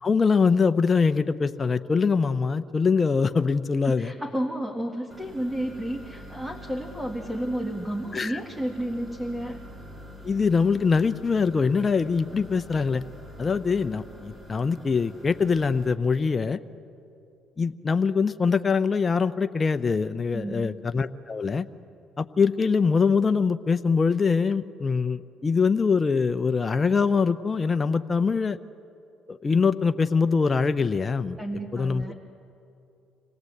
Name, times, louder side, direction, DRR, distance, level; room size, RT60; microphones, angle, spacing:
voice 1, 0.0-4.1 8.1-8.4 10.2-13.0 13.4-16.6 17.6-21.7 22.2-28.6 29.3-31.4 31.7-32.0, left 5 dB, 30° left, 10 dB, 0.7 m, -23 dB
voice 2, 3.8-9.6 20.3-20.8 31.4-32.1, right 1 dB, 5° right, 1 dB, 2.1 m, -31 dB
sound 1, 5.1-15.9, equal, 30° right, 3.4 m, -45 dB
26.5 x 17.5 x 8.0 m, 2.7 s
supercardioid pair, 70°, 0 cm